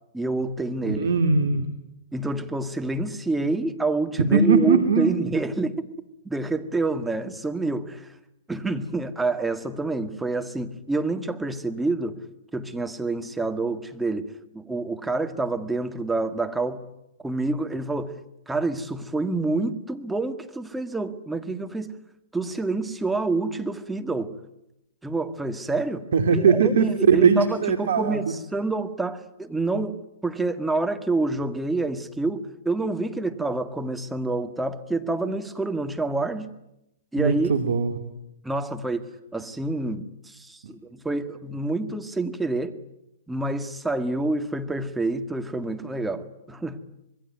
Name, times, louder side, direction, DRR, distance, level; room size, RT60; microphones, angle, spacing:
voice 1, 0.1-1.1 2.1-5.9 6.3-8.1 8.5-12.2 12.5-14.2 14.5-16.8 17.2-18.2 18.5-21.9 22.3-24.3 25.0-36.5 37.1-37.5 38.4-39.1 39.3-42.8 43.3-46.8, right 3 dB, 5° right, 2.0 m, -27 dB
voice 2, 0.8-1.7 4.2-5.1 26.1-28.3 37.2-38.0, right 5 dB, 70° right, 2.6 m, -20 dB
26.5 x 21.5 x 9.2 m
hypercardioid pair, 125°, 0 cm